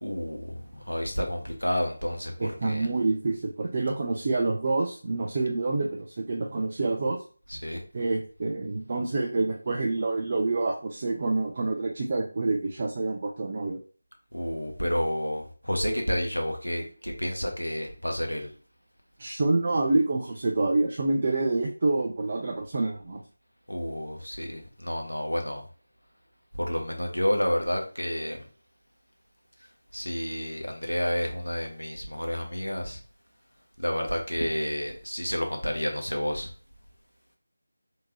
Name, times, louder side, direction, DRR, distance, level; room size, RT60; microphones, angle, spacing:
voice 1, 0.0-2.9 7.5-7.8 14.3-18.5 23.7-25.6 26.5-28.4 29.9-33.0 33.8-36.5, equal, 85° left, 2 dB, 1.0 m, -30 dB
voice 2, 2.4-7.2 7.9-13.8 19.2-23.2, right 3 dB, 30° right, 1 dB, 0.4 m, -27 dB
3.5 x 2.8 x 2.9 m, 0.39 s
figure-of-eight pair, 165°, 0 cm